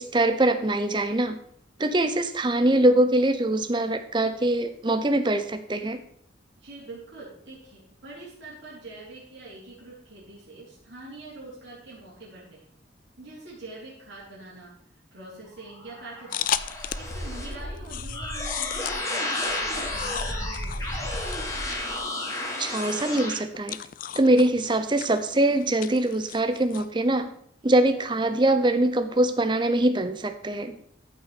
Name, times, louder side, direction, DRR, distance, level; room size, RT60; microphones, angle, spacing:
voice 1, 0.0-1.4 1.8-6.0 22.6-23.8 24.1-27.3 27.6-30.8, right 1 dB, 25° right, 9 dB, 0.6 m, -23 dB
voice 2, 6.6-12.6 13.2-14.7 15.1-16.5 17.0-21.2, right 2 dB, 65° right, -8 dB, 4.2 m, -44 dB
sound 1, 15.7-23.4, left 1 dB, 15° left, 1.7 m, -32 dB
eat apple, 16.3-17.2 17.5-26.9, left 10 dB, 45° left, 0.3 m, -36 dB
14.0 x 5.9 x 4.2 m, 0.67 s
head